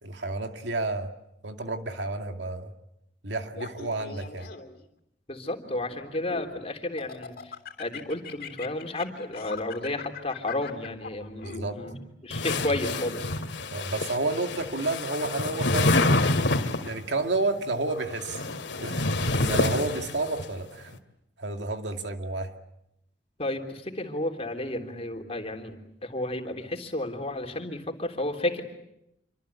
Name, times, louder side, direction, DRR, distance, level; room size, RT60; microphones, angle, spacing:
voice 1, 0.0-1.1 1.4-2.7 3.2-4.5 11.4-11.8 13.7-16.2 16.8-21.0 21.4-22.5, right 2 dB, 85° right, 5 dB, 2.3 m, -31 dB
Laughter, 3.5-4.8 5.5-6.5 7.0-12.0, left 5 dB, 60° left, 3.2 m, -41 dB
voice 2, 5.3-7.5 7.8-11.9 12.2-13.3 23.4-25.8 26.0-28.6, left 1 dB, 35° left, 4 dB, 3.5 m, -32 dB
sound 1, 12.3-17.0 18.0-20.5, left 2 dB, 80° left, 2.2 m, -27 dB
27.5 x 24.5 x 8.5 m, 0.83 s
head